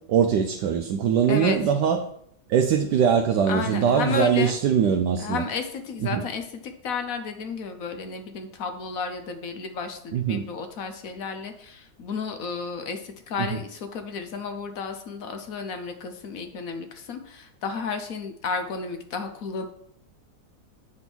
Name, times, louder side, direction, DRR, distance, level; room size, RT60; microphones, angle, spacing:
voice 1, 0.1-2.0 2.5-5.4 6.1-6.2 10.1-10.4 13.5-13.6, right 7 dB, 75° right, 5 dB, 1.2 m, -22 dB
voice 2, 1.3-1.6 3.5-4.5 5.2-19.6, left 5 dB, 60° left, 7 dB, 1.1 m, -32 dB
8.0 x 3.7 x 6.0 m, 0.68 s
omnidirectional pair, 1.9 m